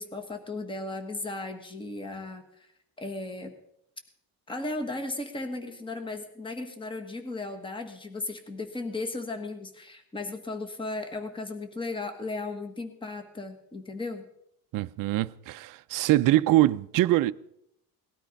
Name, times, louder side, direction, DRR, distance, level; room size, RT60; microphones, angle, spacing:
voice 1, 0.0-2.7 3.0-3.5 4.5-14.3, left 2 dB, 15° left, 1.4 m, -36 dB
voice 2, 14.7-17.3, right 15 dB, 55° right, 0.5 m, -23 dB
18.5 x 12.5 x 5.2 m
cardioid pair, 175°, 38 cm